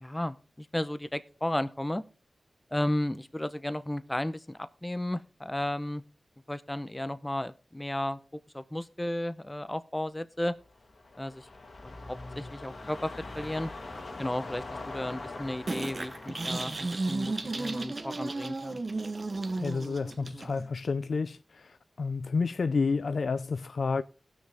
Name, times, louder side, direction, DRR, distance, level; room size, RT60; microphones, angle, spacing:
voice 1, 0.0-2.0 2.7-6.0 6.5-8.2 8.5-10.5 11.2-11.4 11.8-11.9 12.4-13.7 14.2-18.8, left 1 dB, 15° left, 0.8 m, -33 dB
sound 1, 10.6-19.1 19.5-19.6, left 2 dB, 60° left, 2.0 m, -43 dB
sound 2, 15.7-20.7, right 3 dB, 50° right, 0.9 m, -34 dB
voice 2, 19.6-21.4 22.0-24.0, left 4 dB, 75° left, 0.4 m, -29 dB
18.0 x 6.4 x 3.5 m
cardioid pair, 55°, 0 cm